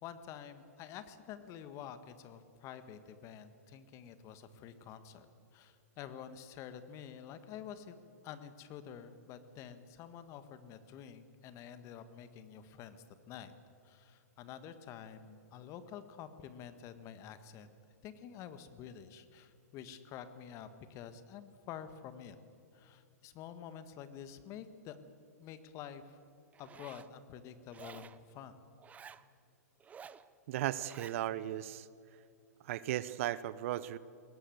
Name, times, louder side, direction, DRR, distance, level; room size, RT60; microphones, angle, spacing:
voice 1, 0.0-13.5 13.8-17.7 18.0-22.4 22.7-25.0 25.4-26.2 26.6-28.7, left 9 dB, 35° left, 11 dB, 1.6 m, -49 dB
Zipper (clothing), 26.5-27.1 27.7-28.2 28.8-29.2 29.8-30.2 30.7-31.2, right 7 dB, 15° right, 0.7 m, -52 dB
voice 2, 30.5-31.9 32.6-34.0, right 13 dB, 55° right, 17 dB, 0.8 m, -36 dB
22.0 x 18.0 x 8.0 m, 2.5 s
hypercardioid pair, 120°, 9 cm